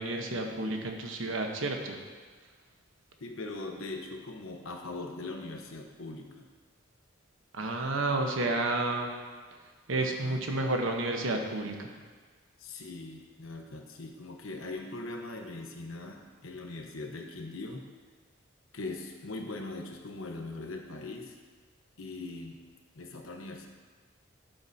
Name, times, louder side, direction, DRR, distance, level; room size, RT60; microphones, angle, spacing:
voice 1, 0.0-2.0 7.5-9.1 9.9-11.9, right 2 dB, 75° right, 3 dB, 1.0 m, -31 dB
voice 2, 3.2-6.5 9.9-10.4 12.6-17.9 18.7-21.4 22.0-22.6 22.9-23.7, left 2 dB, 90° left, 3 dB, 1.0 m, -41 dB
12.0 x 7.7 x 2.8 m, 1.5 s
head